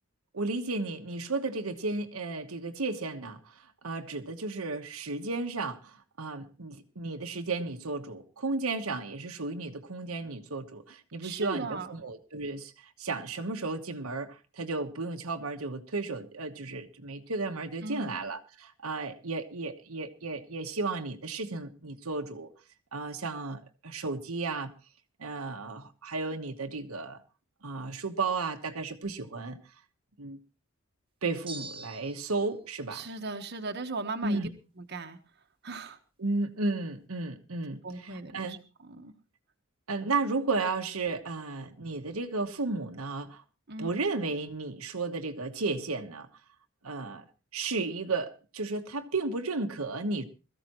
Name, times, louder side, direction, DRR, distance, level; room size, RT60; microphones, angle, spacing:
voice 1, 0.3-3.5 3.8-22.5 22.9-24.7 25.2-27.2 27.6-29.6 30.2-30.4 31.2-33.1 34.2-34.5 36.2-38.6 39.9-43.4 43.8-46.3 46.8-47.2 47.5-50.2, right 3 dB, 90° right, 1.3 m, -33 dB
voice 2, 11.2-11.9 17.8-18.2 32.9-34.4 34.8-35.2 35.6-36.0 37.8-39.1 43.7-44.0, right 3 dB, 50° right, 1.3 m, -38 dB
sound 1, 31.5-32.4, right 3 dB, 25° right, 1.4 m, -43 dB
21.0 x 14.5 x 3.1 m
head